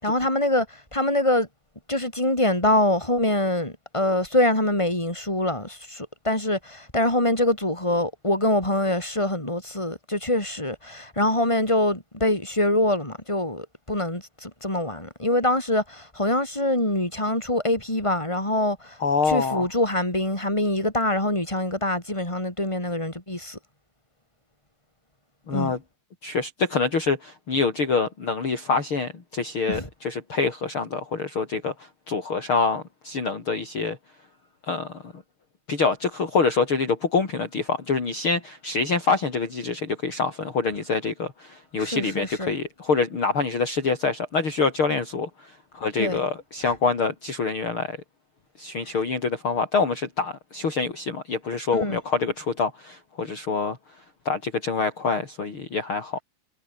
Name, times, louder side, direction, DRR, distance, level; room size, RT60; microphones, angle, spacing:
voice 1, 0.0-1.5 1.9-19.0 19.3-23.6 25.5-25.7 29.7-29.9 41.8-42.5 46.0-46.2 46.6-46.7 48.9-49.0 51.7-52.0, left 1 dB, 10° left, 7.4 m, -24 dB
voice 2, 19.0-19.7 25.5-25.8 26.2-31.7 32.1-34.0 34.7-34.9 35.7-48.0 48.6-53.8 54.3-56.2, left 4 dB, 40° left, 4.2 m, -26 dB
omnidirectional pair, 3.9 m